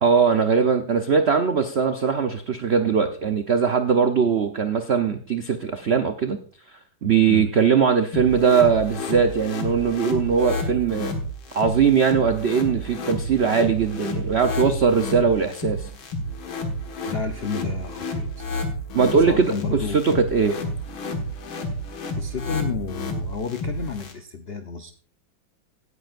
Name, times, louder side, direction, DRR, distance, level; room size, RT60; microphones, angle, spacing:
voice 1, 0.0-6.4 7.0-11.1 11.5-15.9 18.9-20.6, right 6 dB, 75° right, 7 dB, 0.5 m, -20 dB
sound 1, 8.1-24.1, left 1 dB, 90° left, 2.5 m, -30 dB
voice 2, 17.1-18.7 19.3-20.2 22.1-24.9, left 5 dB, 75° left, 6 dB, 0.5 m, -31 dB
17.0 x 9.7 x 2.5 m, 0.43 s
omnidirectional pair, 2.1 m